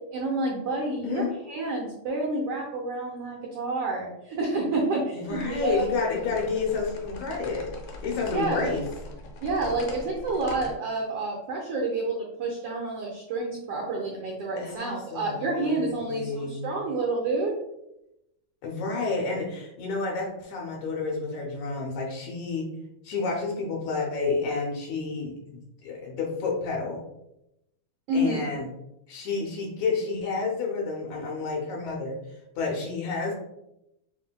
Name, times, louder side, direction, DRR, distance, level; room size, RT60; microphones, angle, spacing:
voice 1, 0.1-5.8 8.3-8.7 9.4-17.6 28.1-28.6, right 2 dB, 85° right, -1 dB, 1.3 m, -29 dB
voice 2, 5.1-7.7 8.0-8.8 14.6-16.7 18.6-22.7 23.0-27.0 28.1-28.7 29.1-32.2 32.6-33.3, left 4 dB, 70° left, -1 dB, 2.1 m, -30 dB
sound 1, 5.3-10.7, left 2 dB, 90° left, 1.2 m, -41 dB
7.4 x 2.7 x 2.2 m, 0.85 s
omnidirectional pair, 3.6 m